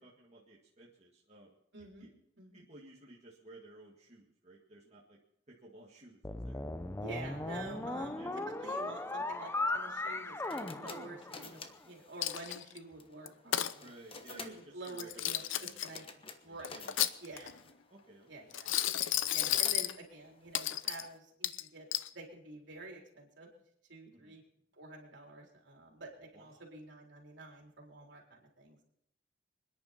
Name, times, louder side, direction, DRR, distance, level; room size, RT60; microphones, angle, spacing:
voice 1, 0.0-1.6 2.0-2.1 2.5-5.2 5.5-6.6 8.1-8.3 13.8-17.2 17.9-18.3 19.3-19.8 24.1-24.3 26.3-26.6, right 2 dB, 35° right, -4 dB, 1.9 m, -56 dB
voice 2, 1.7-2.1 2.4-2.6 7.0-8.1 8.6-13.9 14.3-16.0 16.4-16.7 17.2-17.5 18.3-18.7 19.3-21.9 22.1-23.5 23.9-24.4 24.8-28.8, right 2 dB, 65° right, 0 dB, 4.0 m, -48 dB
sound 1, 6.2-11.7, left 2 dB, 15° left, 0.6 m, -37 dB
sound 2, 10.0-21.2, left 4 dB, 30° left, 1.1 m, -52 dB
Coin (dropping), 12.2-12.8 13.3-13.7 14.9-16.0 16.6-17.6 18.5-19.9 20.5-21.1 21.4-22.1, left 12 dB, 80° left, 0.7 m, -33 dB
26.5 x 10.5 x 4.3 m, 0.74 s
head